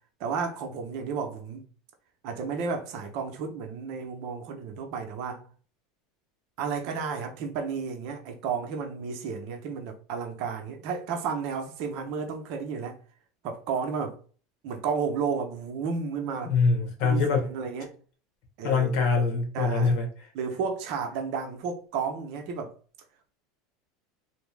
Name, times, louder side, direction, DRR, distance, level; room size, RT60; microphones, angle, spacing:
voice 1, 0.2-1.6 2.2-5.5 6.6-13.0 13.4-14.2 14.6-16.5 17.0-18.0 18.6-19.0 19.5-19.9 20.3-22.7, right 5 dB, 60° right, 0.7 m, -32 dB
voice 2, 16.4-17.4 18.6-20.1, left 4 dB, 65° left, 1.0 m, -24 dB
2.8 x 2.0 x 3.3 m
supercardioid pair, 110°, 0 cm